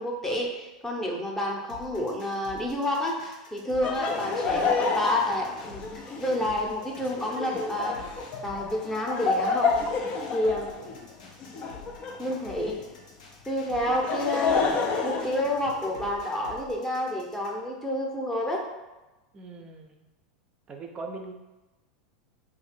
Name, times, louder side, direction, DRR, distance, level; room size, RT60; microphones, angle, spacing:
voice 1, 0.0-5.8 6.2-8.0 8.4-9.8 10.3-10.7 12.2-12.8 13.5-14.7 15.0-18.7, left 1 dB, 10° left, -1 dB, 0.8 m, -29 dB
sound 1, 1.7-17.7, left 3 dB, 75° left, 0.7 m, -49 dB
Laughter, 3.8-12.9 13.7-16.1, left 4 dB, 40° left, 0.5 m, -29 dB
voice 2, 19.3-20.1 20.7-21.3, right 3 dB, 30° right, 3 dB, 0.5 m, -40 dB
2.7 x 2.6 x 4.2 m, 1.1 s
hypercardioid pair, 95°, 4 cm